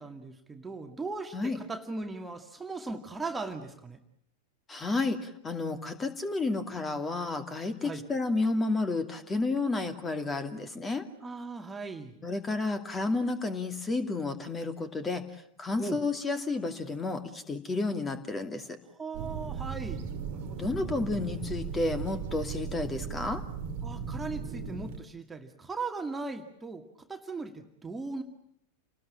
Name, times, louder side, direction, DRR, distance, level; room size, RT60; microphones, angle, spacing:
voice 1, 0.0-4.0 7.8-8.0 11.2-12.2 15.8-16.0 18.9-20.7 23.8-28.2, right 3 dB, 10° right, 4 dB, 2.1 m, -38 dB
voice 2, 4.7-11.0 12.2-15.2 15.6-18.8 20.6-23.4, left 3 dB, 15° left, 9 dB, 2.5 m, -31 dB
sound 1, 19.1-25.0, right 6 dB, 50° right, 2.2 m, -37 dB
29.5 x 20.0 x 8.8 m, 0.75 s
figure-of-eight pair, 90°, 0 cm